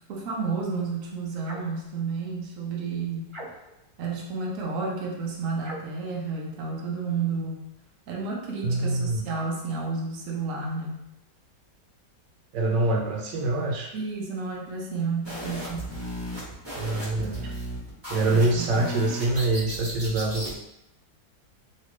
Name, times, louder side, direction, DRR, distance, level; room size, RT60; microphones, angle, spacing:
voice 1, 0.0-3.4 4.0-7.6 8.1-11.0 13.9-15.9 18.3-18.9, right 4 dB, 60° right, -2 dB, 1.0 m, -31 dB
sound 1, 1.4-1.8 3.3-3.9 5.6-6.0, right 1 dB, 35° right, 0.4 m, -41 dB
voice 2, 8.6-9.3 12.5-13.9 16.8-17.5 18.1-20.6, right 2 dB, 90° right, 0 dB, 1.3 m, -25 dB
sound 2, 15.2-20.5, equal, 15° right, 1.3 m, -35 dB
3.2 x 2.9 x 3.0 m, 0.84 s
omnidirectional pair, 1.8 m